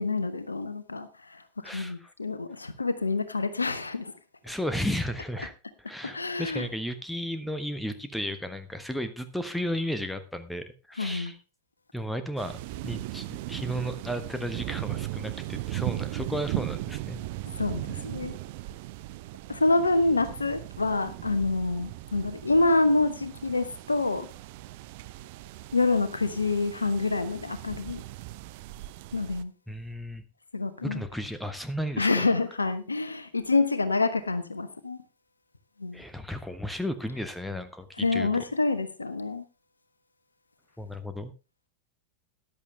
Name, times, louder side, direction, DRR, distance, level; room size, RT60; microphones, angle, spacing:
voice 1, 0.0-4.1 6.0-6.7 11.0-11.3 17.6-18.4 19.5-24.3 25.7-28.0 29.1-29.5 30.5-31.0 32.0-35.0 35.8-36.0 38.0-39.4, left 3 dB, 80° left, 12 dB, 1.2 m, -27 dB
voice 2, 1.6-2.1 4.4-5.5 5.8-11.4 11.9-12.6 12.8-17.2 29.7-30.2 30.8-32.3 35.9-38.3 40.8-41.3, equal, ahead, 10 dB, 1.3 m, -34 dB
sound 1, 12.4-29.4, right 17 dB, 50° right, 0.6 m, -38 dB
13.5 x 11.0 x 3.4 m, 0.29 s
figure-of-eight pair, 90°, 0 cm